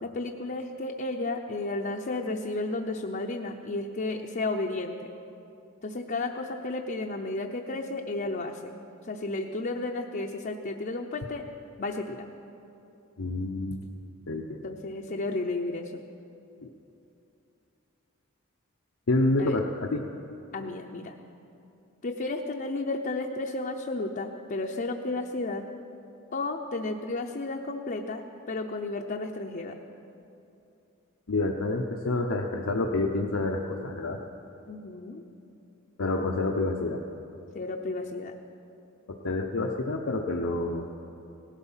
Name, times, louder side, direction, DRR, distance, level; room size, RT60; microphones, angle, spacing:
voice 1, 0.0-5.1 5.8-8.7 9.0-11.4 11.8-12.2 14.6-16.0 19.4-19.6 20.5-21.1 22.0-25.6 26.3-29.8 34.7-35.2 37.5-38.4, left 2 dB, 45° left, 1 dB, 0.7 m, -33 dB
voice 2, 13.2-13.9 14.3-14.6 16.6-16.7 19.1-20.0 31.3-34.2 36.0-37.0 39.2-40.9, left 2 dB, 80° left, 1 dB, 0.8 m, -28 dB
18.0 x 12.5 x 5.7 m, 2.8 s
head